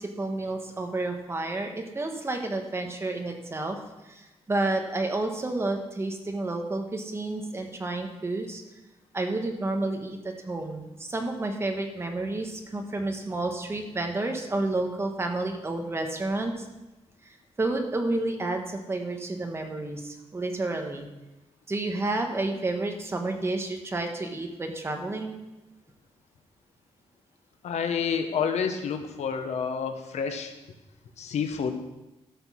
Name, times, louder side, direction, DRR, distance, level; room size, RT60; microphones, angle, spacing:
voice 1, 0.0-3.8 4.0-8.6 9.1-16.7 17.2-21.1 21.7-25.4, right 2 dB, 25° right, 4 dB, 1.2 m, -30 dB
voice 2, 27.6-30.5 31.2-31.7, left 6 dB, 85° left, 7 dB, 1.1 m, -29 dB
12.5 x 6.1 x 6.2 m, 1.0 s
wide cardioid pair, 170°, 11 cm